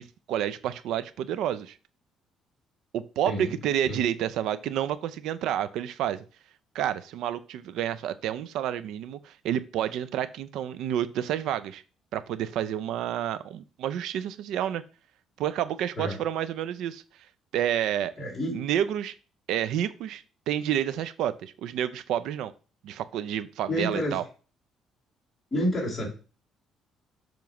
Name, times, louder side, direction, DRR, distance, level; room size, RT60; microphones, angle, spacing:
voice 1, 0.0-1.8 2.9-6.2 6.7-11.8 12.1-14.8 15.4-17.0 17.5-18.1 18.5-19.1 19.5-22.5 22.8-24.2, right 10 dB, 80° right, 13 dB, 0.4 m, -29 dB
voice 2, 3.2-3.6 3.9-4.0 16.0-16.2 18.2-18.6 23.7-24.2 25.5-26.1, equal, 20° left, -4 dB, 2.8 m, -29 dB
7.1 x 3.1 x 5.9 m, 0.36 s
cardioid pair, 125°, 0 cm